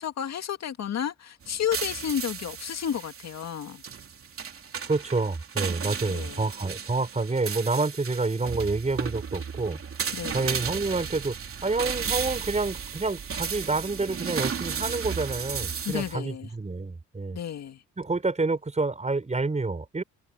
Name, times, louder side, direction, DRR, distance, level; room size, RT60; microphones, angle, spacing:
voice 1, 0.0-3.8 6.1-6.4 10.1-10.6 15.8-16.5 17.3-17.8, left 9 dB, 60° left, 2.1 m, -32 dB
sound 1, 1.4-16.1, right 7 dB, 45° right, 3.4 m, -34 dB
voice 2, 4.8-9.8 10.3-17.4 18.0-20.0, right 3 dB, 25° right, 6.7 m, -28 dB
cardioid pair, 90°, 30 cm